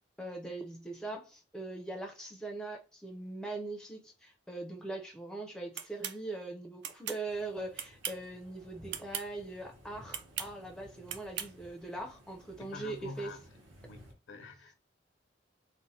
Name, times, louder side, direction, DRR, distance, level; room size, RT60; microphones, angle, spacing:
voice 1, 0.2-13.3, right 2 dB, 5° left, 0.4 m, -41 dB
sound 1, 5.8-6.2 6.8-7.2 7.8-8.3 8.9-9.3 10.1-10.5 11.1-11.5, right 10 dB, 65° right, 0.4 m, -38 dB
sound 2, 7.2-14.1, equal, 85° right, 0.9 m, -57 dB
voice 2, 12.6-13.4 13.9-14.8, left 4 dB, 75° left, 0.6 m, -46 dB
3.1 x 2.1 x 2.6 m
head